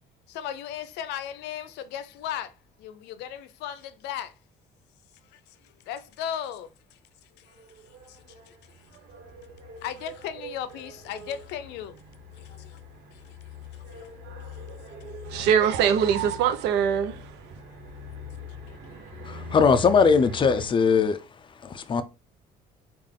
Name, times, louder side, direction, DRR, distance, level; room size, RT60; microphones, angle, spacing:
voice 1, 0.3-2.5 2.8-4.3 5.3-5.4 5.9-7.0 7.4-7.5 8.1-8.6 9.8-12.0 12.3-12.8 13.1-13.2 13.9-14.1, left 9 dB, 85° left, 0.5 m, -36 dB
sound 1, 7.5-20.7, left 2 dB, 70° right, 1.2 m, -43 dB
voice 2, 15.3-17.6, right 8 dB, 85° right, 0.6 m, -23 dB
voice 3, 19.3-21.2 21.6-22.0, left 5 dB, 30° left, 0.4 m, -20 dB
3.5 x 2.4 x 3.6 m
cardioid pair, 110°, 17 cm